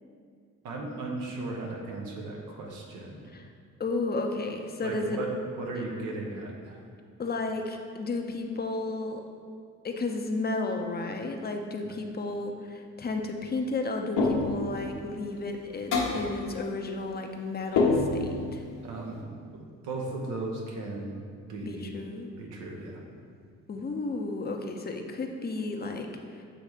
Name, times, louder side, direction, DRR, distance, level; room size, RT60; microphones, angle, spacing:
voice 1, 0.6-3.2 4.8-6.8 11.8-11.9 18.8-19.3 19.5-21.2 21.5-21.9 22.4-23.0, right 2 dB, 90° right, 0 dB, 1.1 m, -36 dB
voice 2, 3.8-5.2 7.2-9.2 9.8-18.6 21.6-22.3 23.7-26.1, left 3 dB, 30° left, 4 dB, 0.6 m, -33 dB
sound 1, 14.2-14.7 15.9-16.3 17.8-18.4, left 3 dB, 85° left, 1.0 m, -25 dB
7.7 x 3.1 x 5.0 m, 2.2 s
cardioid pair, 90°, 30 cm